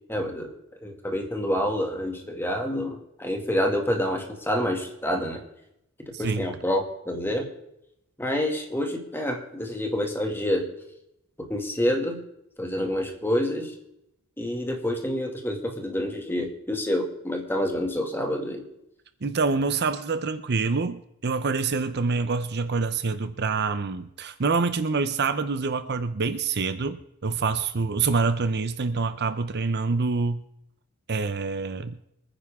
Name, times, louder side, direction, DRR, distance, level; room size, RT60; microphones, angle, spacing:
voice 1, 0.1-0.5 0.8-5.4 6.0-7.5 8.2-10.6 11.4-12.2 12.6-13.7 14.4-18.6, left 1 dB, 10° left, 2 dB, 2.1 m, -27 dB
voice 2, 6.1-6.5 19.2-30.4 31.1-32.0, right 4 dB, 50° right, 11 dB, 0.7 m, -26 dB
25.5 x 10.0 x 3.6 m, 0.81 s
head